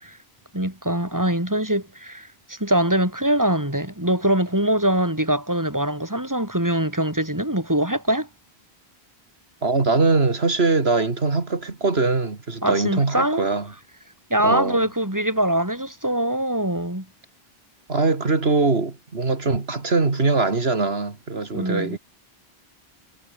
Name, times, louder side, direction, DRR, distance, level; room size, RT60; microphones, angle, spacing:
voice 1, 0.5-8.3 12.6-13.4 14.3-17.0 21.5-22.0, right 1 dB, 15° right, 5.1 m, -23 dB
voice 2, 9.6-13.7 14.4-14.9 17.9-22.0, right 3 dB, 75° right, 2.7 m, -22 dB
omnidirectional pair, 1.1 m